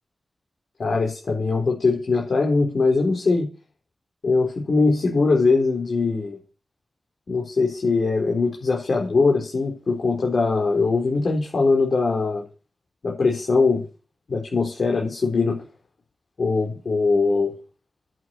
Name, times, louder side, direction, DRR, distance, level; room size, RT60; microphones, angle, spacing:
voice 1, 0.8-3.5 4.2-6.4 7.3-12.4 13.0-13.8 14.3-15.6 16.4-17.5, left 4 dB, 70° left, 0 dB, 4.3 m, -21 dB
11.0 x 8.2 x 8.3 m, 0.34 s
cardioid pair, 55°, 0 cm